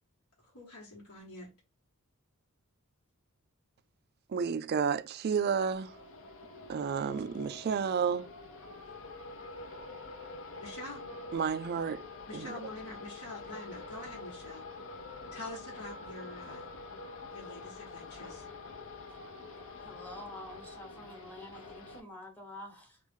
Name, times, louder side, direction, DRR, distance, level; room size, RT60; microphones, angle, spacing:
voice 1, 0.4-1.5 10.6-11.0 12.3-14.6 15.3-16.7 17.3-18.5, left 2 dB, 80° left, 1.3 m, -45 dB
voice 2, 4.3-6.0 6.7-8.3 11.3-12.0 12.3-12.5, right 6 dB, 45° right, 0.3 m, -31 dB
sound 1, 5.7-22.0, left 3 dB, 60° left, 0.7 m, -46 dB
voice 3, 19.8-23.0, left 1 dB, 10° left, 1.0 m, -48 dB
3.0 x 2.4 x 3.6 m
head